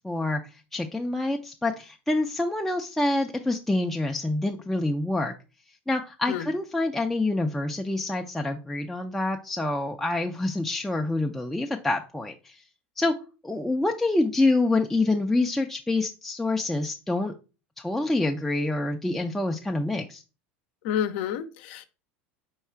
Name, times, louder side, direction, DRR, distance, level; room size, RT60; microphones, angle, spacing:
voice 1, 0.0-0.4 0.7-5.3 5.9-12.6 13.0-13.1 13.4-17.3 17.8-20.2, left 2 dB, 5° left, 2 dB, 0.4 m, -26 dB
voice 2, 20.8-21.9, left 9 dB, 70° left, 11 dB, 0.6 m, -29 dB
4.6 x 2.3 x 4.4 m, 0.32 s
hypercardioid pair, 100°, 6 cm